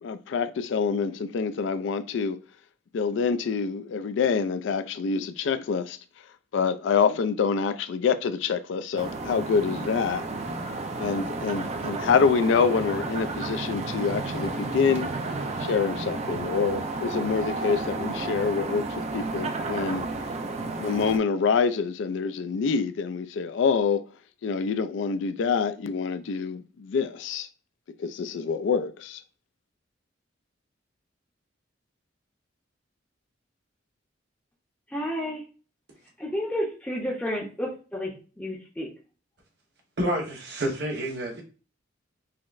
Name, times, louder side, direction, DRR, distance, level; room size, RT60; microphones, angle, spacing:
voice 1, 0.0-2.4 2.9-6.0 6.5-10.2 11.0-15.1 15.6-18.8 19.1-20.0 20.6-24.0 24.4-27.5 28.0-29.2, left 5 dB, 65° left, 0.3 m, -26 dB
sound 1, 9.0-21.2, right 3 dB, 35° right, 0.4 m, -32 dB
voice 2, 34.9-35.4 36.2-38.9, equal, 5° left, 0.6 m, -31 dB
voice 3, 40.0-41.4, right 1 dB, 60° right, 1.1 m, -29 dB
5.6 x 2.0 x 2.4 m
head